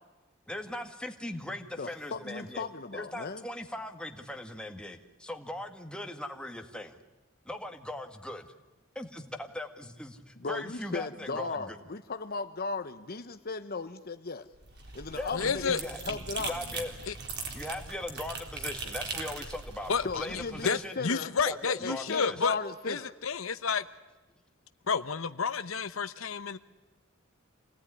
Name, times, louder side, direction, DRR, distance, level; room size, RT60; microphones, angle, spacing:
voice 1, 0.5-7.0 7.5-8.5 9.0-11.8 15.2-16.9 17.5-21.0 21.5-22.4, left 1 dB, 5° left, 4 dB, 1.8 m, -39 dB
voice 2, 1.8-3.5 10.4-14.5 14.9-15.8 16.0-16.6 20.0-21.3 21.8-23.1, left 4 dB, 50° left, 9 dB, 1.0 m, -36 dB
sound 1, 14.5-20.7, right 4 dB, 55° right, 3.8 m, -40 dB
voice 3, 15.3-15.8 17.1-17.2 19.9-22.6 22.9-23.8 24.9-26.6, left 5 dB, 80° left, 12 dB, 0.9 m, -30 dB
27.0 x 18.0 x 9.9 m, 1.2 s
head